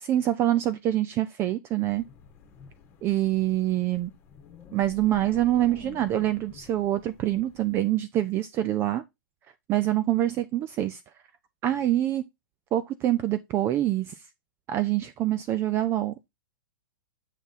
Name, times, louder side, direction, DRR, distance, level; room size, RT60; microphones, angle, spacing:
voice 1, 0.0-2.0 3.0-4.1 4.7-9.0 9.7-11.0 11.6-12.2 12.7-14.1 14.7-16.3, right 13 dB, 20° right, 0.4 m, -25 dB
Wind, 1.8-7.7, left 5 dB, 20° left, 1.7 m, -49 dB
7.3 x 3.6 x 4.0 m
hypercardioid pair, 145°, 11 cm